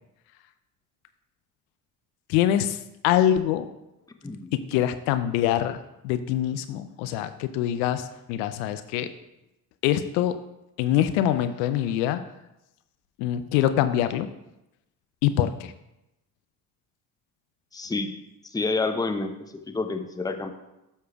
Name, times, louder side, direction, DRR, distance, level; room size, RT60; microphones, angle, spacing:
voice 1, 2.3-3.7 4.5-5.8 6.0-9.1 9.8-10.4 10.8-12.2 13.2-14.3 15.2-15.7, left 11 dB, 65° left, 11 dB, 0.6 m, -24 dB
voice 2, 17.7-18.1 18.4-20.5, left 3 dB, 10° left, 7 dB, 0.7 m, -29 dB
12.5 x 6.6 x 2.3 m, 0.91 s
hypercardioid pair, 55°, 49 cm